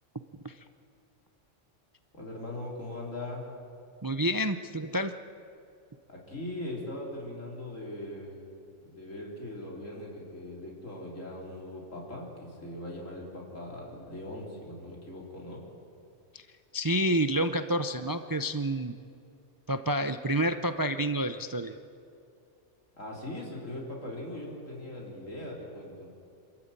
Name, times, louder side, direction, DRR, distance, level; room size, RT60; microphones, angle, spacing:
voice 1, 2.1-3.4 6.1-8.4 8.8-15.6 22.9-26.1, left 1 dB, 80° left, -2 dB, 4.3 m, -40 dB
voice 2, 4.0-5.1 16.3-16.4 16.7-18.9 19.7-21.7, right 1 dB, 30° right, 9 dB, 0.4 m, -29 dB
27.0 x 13.5 x 8.9 m, 2.5 s
omnidirectional pair, 1.3 m